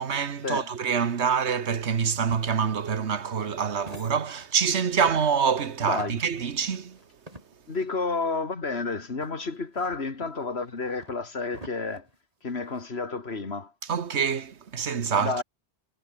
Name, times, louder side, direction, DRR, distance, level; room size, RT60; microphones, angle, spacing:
voice 1, 0.0-7.0 13.9-15.4, right 6 dB, 85° right, 1.6 m, -26 dB
sound 1, 1.9-4.8 5.1-7.9 8.3-8.4 9.2-12.9, right 1 dB, 35° right, 5.1 m, -50 dB
voice 2, 5.8-6.2 7.7-12.1 12.4-13.7 15.2-15.4, left 3 dB, 70° left, 2.6 m, -30 dB
omnidirectional pair, 1.1 m